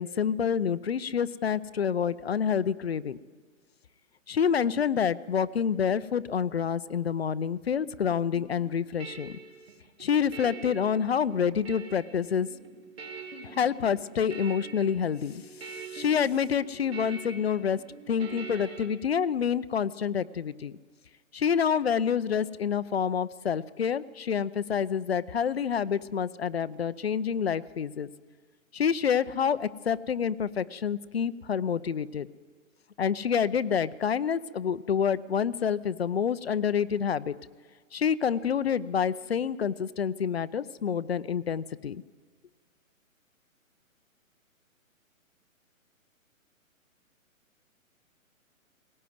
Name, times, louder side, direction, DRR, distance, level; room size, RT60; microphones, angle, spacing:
voice 1, 0.0-3.2 4.3-9.4 10.0-12.5 13.4-15.4 15.7-17.8 18.1-20.7 21.3-28.1 28.7-32.3 33.0-37.4 37.9-42.0, left 7 dB, 50° left, 15 dB, 0.7 m, -28 dB
sound 1, 8.3-18.9, right 5 dB, 45° right, 2.9 m, -44 dB
19.5 x 17.5 x 9.4 m, 1.5 s
hypercardioid pair, 170°, 41 cm